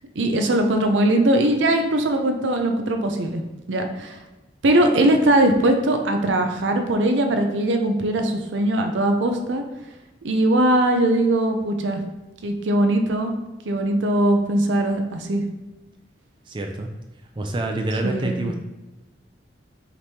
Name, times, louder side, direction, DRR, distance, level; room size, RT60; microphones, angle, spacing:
voice 1, 0.2-3.4 3.7-4.2 4.6-9.6 10.2-12.0 12.4-13.3 13.6-15.4 18.0-18.5, right 1 dB, 85° right, 5 dB, 0.5 m, -20 dB
voice 2, 16.5-16.9 17.4-18.6, right 2 dB, 25° right, 3 dB, 0.4 m, -27 dB
5.1 x 3.1 x 2.8 m, 1.1 s
head